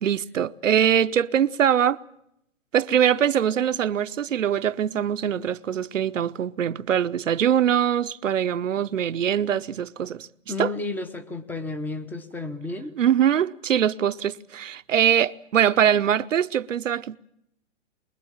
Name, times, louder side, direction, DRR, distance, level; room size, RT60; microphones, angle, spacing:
voice 1, 0.0-2.0 2.7-10.3 10.6-10.7 13.0-17.2, right 9 dB, 75° right, 0.9 m, -22 dB
voice 2, 10.5-13.0, left 3 dB, 5° left, 0.9 m, -32 dB
24.0 x 22.0 x 7.2 m
hypercardioid pair, 140°, 38 cm